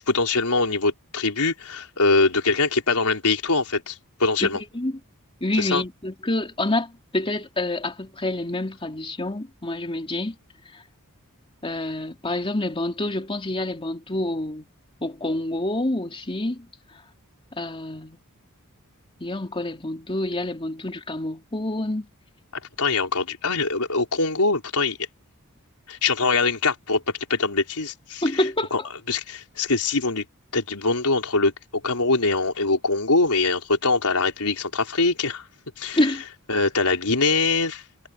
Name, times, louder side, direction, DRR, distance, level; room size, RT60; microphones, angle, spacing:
voice 1, 0.0-4.6 5.6-5.8 22.8-25.0 25.9-27.0 27.3-28.4 28.7-28.8 29.1-30.2 30.5-31.5 31.8-35.4 35.8-36.0 36.5-37.8, left 3 dB, 85° left, 4.3 m, -23 dB
voice 2, 4.4-4.9 5.4-10.3 10.7-10.8 11.6-14.7 15.0-16.7 17.6-18.2 19.2-22.1 28.2-28.9 35.9-36.2, left 1 dB, 25° left, 2.8 m, -27 dB
head